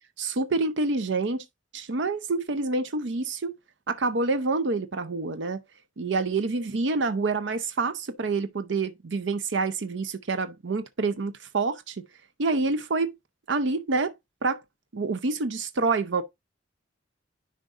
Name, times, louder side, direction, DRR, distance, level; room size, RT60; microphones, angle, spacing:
voice 1, 0.2-1.4 1.7-3.6 3.9-5.6 6.0-12.1 12.4-13.1 13.5-14.1 14.4-14.6 14.9-16.2, right 3 dB, 65° right, 0.6 m, -27 dB
10.0 x 5.1 x 2.5 m
head